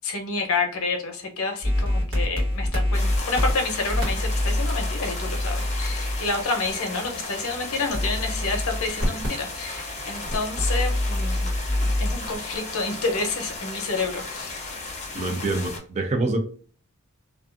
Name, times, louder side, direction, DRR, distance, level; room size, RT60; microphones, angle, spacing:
voice 1, 0.0-11.5 12.0-14.7, left 3 dB, 75° left, 3 dB, 0.7 m, -29 dB
sound 1, 1.6-13.6, left 1 dB, 60° right, 1.2 m, -27 dB
sound 2, 2.9-15.8, left 3 dB, 30° left, 0.6 m, -35 dB
voice 2, 15.1-16.4, right 2 dB, 30° right, 6 dB, 0.4 m, -26 dB
2.4 x 2.3 x 2.4 m, 0.42 s
head